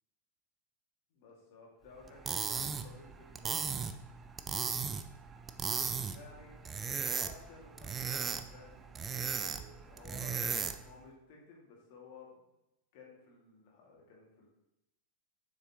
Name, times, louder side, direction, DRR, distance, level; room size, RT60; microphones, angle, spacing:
voice 1, 1.1-3.6 4.2-4.3 5.7-6.6 7.0-12.4 12.9-14.5, left 3 dB, 50° left, -2 dB, 2.1 m, -55 dB
sound 1, 2.1-10.9, right 6 dB, 20° right, 0.4 m, -37 dB
7.4 x 6.3 x 3.0 m, 0.89 s
figure-of-eight pair, 90°, 0 cm